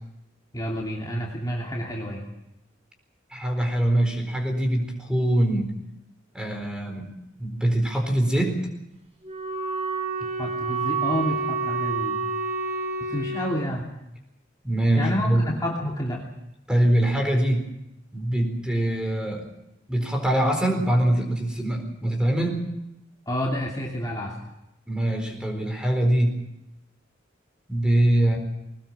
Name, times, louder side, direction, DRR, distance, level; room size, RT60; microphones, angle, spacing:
voice 1, 0.5-2.2 10.4-12.2 13.0-13.9 15.0-16.2 23.3-24.3, equal, 20° left, -2 dB, 2.9 m, -29 dB
voice 2, 3.3-5.7 6.3-7.1 7.4-8.6 14.6-15.4 16.7-17.7 18.1-19.5 19.9-22.7 24.9-26.4 27.7-28.4, right 1 dB, 5° right, 3 dB, 4.3 m, -23 dB
Wind instrument woodwind instrument, 9.2-13.6, right 4 dB, 30° right, 4.9 m, -28 dB
21.0 x 19.5 x 7.4 m, 0.88 s
head